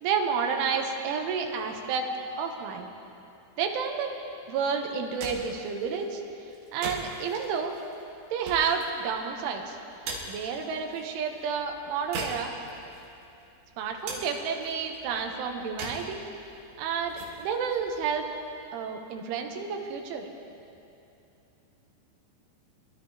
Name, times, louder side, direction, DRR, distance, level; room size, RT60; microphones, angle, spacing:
voice 1, 0.0-2.1 2.4-2.9 3.6-4.1 4.5-6.2 6.7-7.8 8.3-9.8 10.3-12.5 13.8-16.2 16.8-18.2 18.7-20.3, right 6 dB, 90° right, 3 dB, 3.4 m, -30 dB
sound 1, 4.9-18.9, right 3 dB, 70° right, 4.0 m, -43 dB
25.5 x 12.5 x 2.9 m, 2.8 s
omnidirectional pair, 5.6 m